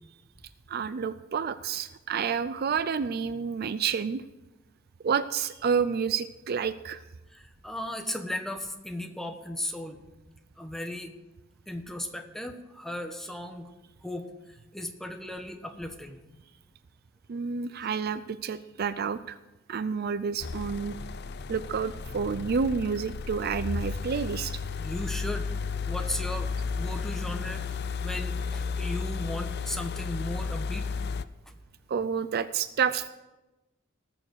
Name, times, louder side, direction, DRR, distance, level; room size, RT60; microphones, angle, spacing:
voice 1, 0.7-4.2 5.0-7.0 17.3-19.4 19.7-21.0 21.5-24.6 31.9-33.1, right 6 dB, 50° right, 14 dB, 0.4 m, -29 dB
voice 2, 7.3-10.0 10.6-11.1 11.7-13.7 14.0-16.2 24.8-25.5 25.8-26.5 26.7-30.9, left 1 dB, ahead, 5 dB, 1.2 m, -36 dB
sound 1, 20.4-31.2, left 5 dB, 55° left, 0.5 m, -33 dB
18.5 x 7.0 x 6.4 m, 1.1 s
head